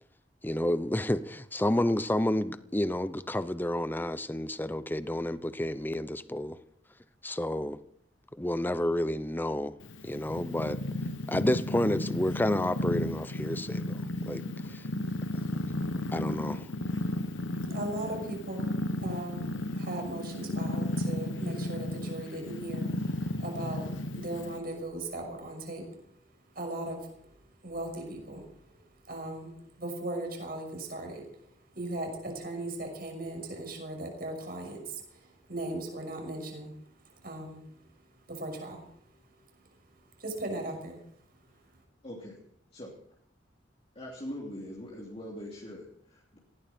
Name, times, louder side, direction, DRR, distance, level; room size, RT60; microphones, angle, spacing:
voice 1, 0.4-6.6 7.2-7.8 8.4-9.7 10.0-10.8 11.3-14.4 14.7-14.9 16.1-16.7, left 1 dB, 10° left, 0.8 m, -30 dB
Purr, 9.8-24.6, left 1 dB, 90° left, 1.1 m, -34 dB
voice 2, 17.7-18.7 19.0-25.9 26.5-27.0 27.6-28.8 29.1-31.2 31.7-36.7 37.2-37.6 38.3-38.8 40.2-41.0, right 1 dB, 50° right, 6.0 m, -38 dB
voice 3, 42.0-42.4 42.7-42.9 43.9-46.4, equal, 35° left, 3.2 m, -42 dB
19.5 x 16.5 x 4.5 m
head